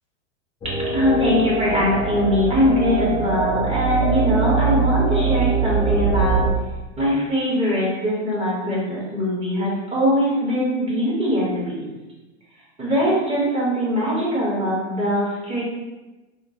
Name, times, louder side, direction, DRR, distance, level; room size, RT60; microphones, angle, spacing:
sound 1, 0.6-6.5, right 4 dB, 15° left, 0.4 m, -22 dB
voice 1, 0.9-6.5 7.0-11.9 12.8-15.6, equal, 15° right, -6 dB, 1.0 m, -22 dB
2.9 x 2.1 x 2.7 m, 1.1 s
hypercardioid pair, 105°, 36 cm